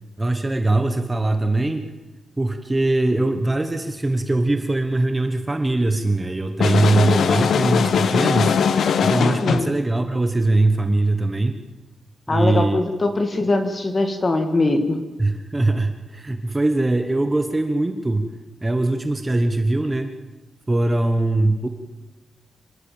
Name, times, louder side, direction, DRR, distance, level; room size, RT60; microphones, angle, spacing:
voice 1, 0.2-1.8 2.4-8.6 9.0-11.6 12.3-12.8 15.2-18.3 18.6-20.1 20.7-21.7, right 2 dB, 15° right, 6 dB, 1.1 m, -21 dB
sound 1, 6.6-9.8, left 6 dB, 70° left, 1.1 m, -20 dB
voice 2, 12.3-15.0, left 2 dB, 25° left, 6 dB, 2.0 m, -21 dB
26.0 x 13.0 x 8.8 m, 1.1 s
wide cardioid pair, 170°, 0 cm